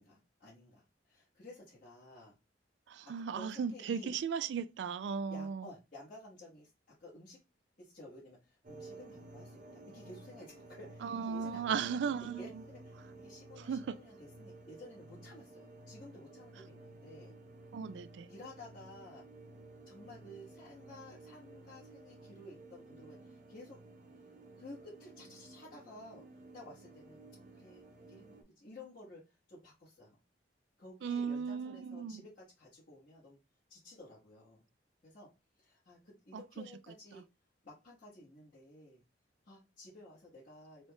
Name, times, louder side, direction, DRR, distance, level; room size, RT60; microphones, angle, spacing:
voice 1, 0.0-2.4 3.2-4.2 5.3-7.4 7.8-17.4 18.3-19.2 19.8-23.8 24.6-27.2 27.5-30.2 30.8-33.4 33.7-34.7 35.0-35.3 35.6-37.2 37.6-39.0 39.4-40.9, left 1 dB, 50° left, 1.5 m, -54 dB
voice 2, 2.9-5.7 11.0-12.6 13.6-14.0 17.7-18.3 31.0-32.2 36.3-36.7, right 6 dB, 70° right, 0.3 m, -36 dB
sound 1, 8.6-28.4, right 2 dB, 50° right, 0.9 m, -54 dB
3.9 x 2.4 x 3.4 m
head